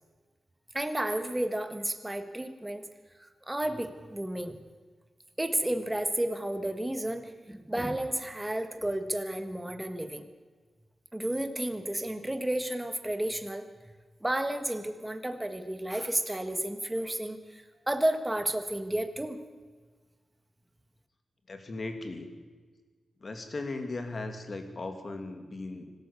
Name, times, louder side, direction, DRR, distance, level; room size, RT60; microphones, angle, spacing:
voice 1, 0.7-2.8 3.2-4.6 5.4-10.3 11.1-13.6 14.2-19.4, right 1 dB, 10° right, 8 dB, 1.6 m, -32 dB
voice 2, 21.5-22.3 23.2-25.9, left 2 dB, 35° left, 6 dB, 2.6 m, -37 dB
24.5 x 13.0 x 8.3 m, 1.4 s
wide cardioid pair, 165°, 0 cm